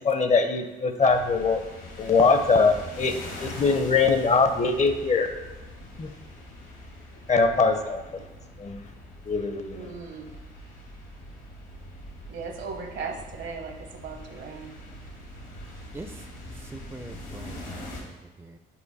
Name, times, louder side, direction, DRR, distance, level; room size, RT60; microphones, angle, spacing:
voice 1, 0.0-1.6 2.0-5.3 6.0-6.1 7.3-8.0 8.6-8.8 9.3-9.9, left 4 dB, 35° left, 8 dB, 0.7 m, -22 dB
sound 1, 1.0-18.0, left 1 dB, 75° left, 1.7 m, -43 dB
voice 2, 9.7-10.3 12.3-14.7, right 5 dB, 65° right, 5 dB, 1.0 m, -37 dB
voice 3, 16.6-18.6, right 2 dB, 15° right, 7 dB, 0.5 m, -43 dB
5.6 x 4.5 x 4.1 m, 1.1 s
supercardioid pair, 60°, 20 cm